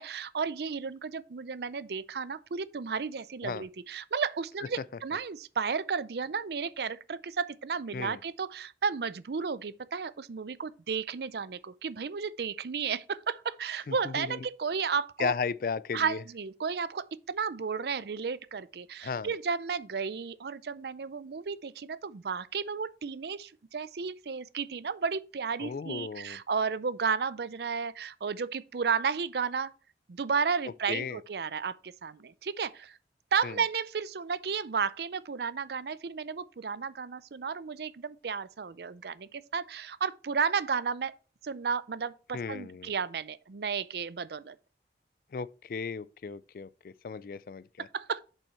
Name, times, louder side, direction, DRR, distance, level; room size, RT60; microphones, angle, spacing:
voice 1, 0.0-15.3 15.9-29.7 30.1-33.0 33.3-41.1 41.4-44.6 47.8-48.2, right 5 dB, 65° right, 0.5 m, -33 dB
voice 2, 13.9-14.4 15.2-16.2 19.0-19.3 25.6-26.4 30.9-31.2 33.4-33.6 42.3-42.9 45.3-47.9, left 5 dB, 50° left, 0.3 m, -35 dB
7.0 x 5.5 x 4.2 m
head